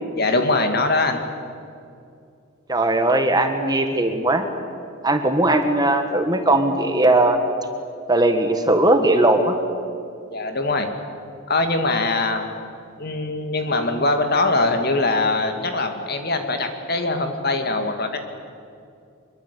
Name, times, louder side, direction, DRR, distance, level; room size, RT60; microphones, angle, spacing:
voice 1, 0.2-1.2 10.3-10.9 11.5-12.5 13.0-18.2, left 2 dB, 45° left, 6 dB, 2.4 m, -22 dB
voice 2, 2.7-4.4 5.0-7.4 8.1-9.6, right 2 dB, 20° right, 6 dB, 1.6 m, -18 dB
24.0 x 23.0 x 8.5 m, 2.5 s
head